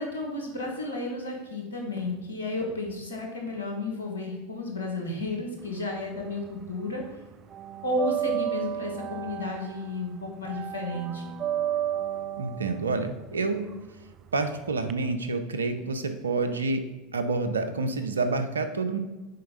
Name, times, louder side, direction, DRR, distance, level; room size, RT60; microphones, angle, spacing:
voice 1, 0.0-7.2 7.8-11.3, left 2 dB, 85° left, 1 dB, 1.5 m, -32 dB
sound 1, 5.6-6.8 7.0-14.9, right 11 dB, 40° right, 0.4 m, -33 dB
voice 2, 12.4-13.7 14.3-16.8 17.1-19.0, right 3 dB, 90° right, 8 dB, 0.7 m, -28 dB
6.6 x 4.4 x 5.3 m, 1.1 s
hypercardioid pair, 85°, 0 cm